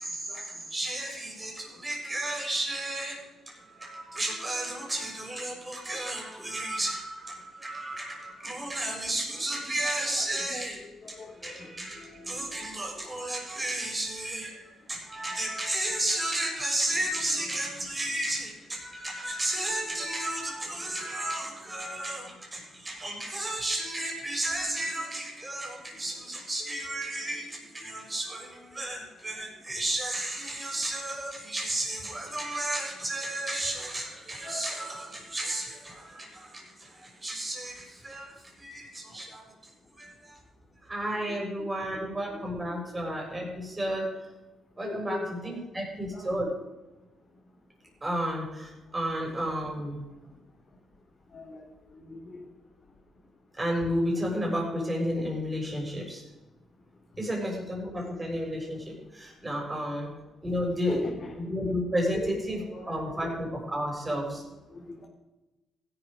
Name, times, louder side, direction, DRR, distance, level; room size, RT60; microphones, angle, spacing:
voice 1, 0.0-3.2 3.5-10.8 11.1-39.4 40.0-40.4 40.9-44.2 44.8-46.5 48.0-50.0 53.6-56.2 57.2-60.1 60.4-61.0 61.4-64.4, right 1 dB, 20° right, -1 dB, 7.0 m, -32 dB
voice 2, 8.8-10.4 10.7-11.9 12.2-12.3 17.0-17.1 17.5-17.6 34.4-34.7 41.3-42.1 42.3-42.8 44.8-45.6 46.1-46.5 51.3-51.6 51.9-52.4 57.2-57.4 60.9-61.4 62.1-62.3 62.5-63.3 64.7-65.1, left 3 dB, 40° left, -3 dB, 4.0 m, -43 dB
16.0 x 12.0 x 5.4 m, 1.1 s
cardioid pair, 90°, 0 cm